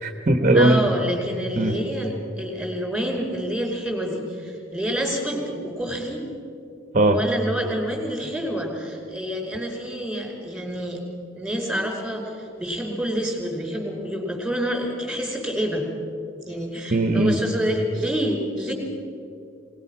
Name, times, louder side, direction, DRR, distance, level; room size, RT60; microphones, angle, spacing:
voice 1, 0.0-0.8 1.5-1.8 6.9-7.2 16.9-17.4, right 2 dB, 40° right, 6 dB, 1.2 m, -18 dB
voice 2, 0.5-6.2 7.1-11.0 11.3-15.9 16.4-18.7, equal, ahead, 1 dB, 4.7 m, -28 dB
25.0 x 19.0 x 6.0 m, 2.5 s
head